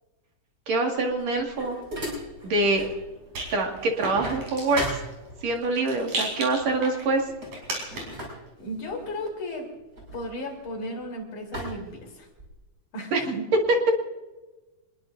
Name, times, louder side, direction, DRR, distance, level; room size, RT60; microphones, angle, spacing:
voice 1, 0.7-1.8 2.4-2.9 3.5-5.0 5.4-7.2 13.1-13.2, right 3 dB, 60° right, 1 dB, 3.2 m, -25 dB
sound 1, 1.0-3.0 3.4-5.7 6.6-6.8 7.2-11.0 11.5-12.7, equal, 25° right, 5.9 m, -38 dB
Rattle, 2.2-8.3, right 2 dB, 85° right, 6.1 m, -37 dB
voice 2, 8.6-9.7 10.1-12.3 12.9-13.5, equal, 70° left, 0 dB, 5.0 m, -34 dB
26.5 x 20.5 x 2.6 m, 1.2 s
omnidirectional pair, 3.5 m